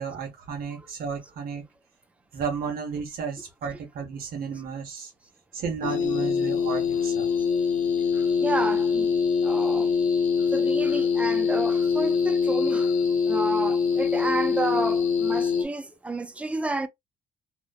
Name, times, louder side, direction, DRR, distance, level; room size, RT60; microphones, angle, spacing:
voice 1, 0.0-1.6 2.3-5.1 5.5-7.3, right 6 dB, 60° right, 0.9 m, -33 dB
sound 1, 5.8-15.6, left 5 dB, 50° left, 0.7 m, -24 dB
voice 2, 8.4-9.1 9.4-9.9 10.5-12.9 13.3-16.9, right 2 dB, 10° right, 0.4 m, -30 dB
2.9 x 2.0 x 2.3 m
cardioid pair, 110°, 17 cm